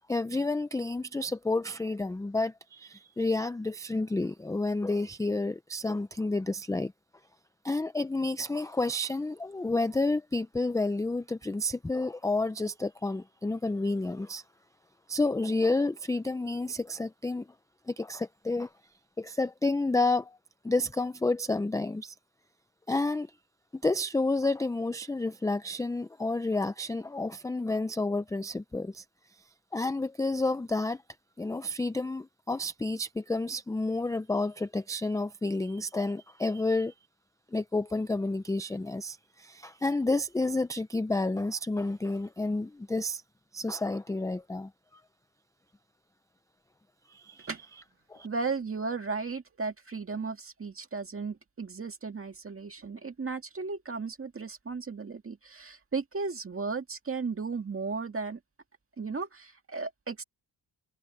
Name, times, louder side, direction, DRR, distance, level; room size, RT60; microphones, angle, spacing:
voice 1, 0.1-6.9 7.6-14.4 15.1-17.5 17.9-18.7 19.2-20.4 20.6-22.1 22.9-23.3 23.7-29.0 29.7-31.0 31.4-36.9 37.5-43.2 43.5-45.0 47.1-47.5 48.1-48.3, left 2 dB, 10° left, 0.3 m, -30 dB
voice 2, 48.2-58.4 59.0-60.2, right 4 dB, 30° right, 2.0 m, -35 dB
wide cardioid pair, 150°, 43 cm